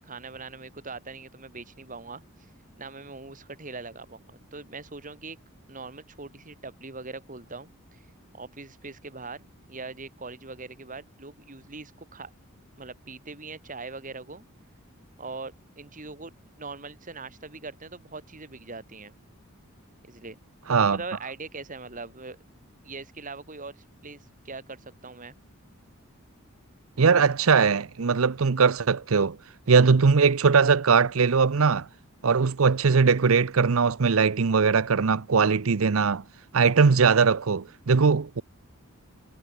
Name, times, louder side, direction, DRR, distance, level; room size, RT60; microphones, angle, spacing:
voice 1, 0.0-2.2 2.8-5.4 5.7-8.0 8.3-12.3 12.8-14.4 15.2-19.1 20.0-20.4 20.8-22.4 22.8-25.3, right 3 dB, 35° right, 2.6 m, -41 dB
voice 2, 27.0-29.4 29.7-31.9 32.2-36.2 36.5-38.4, right 5 dB, 70° right, 0.7 m, -20 dB
head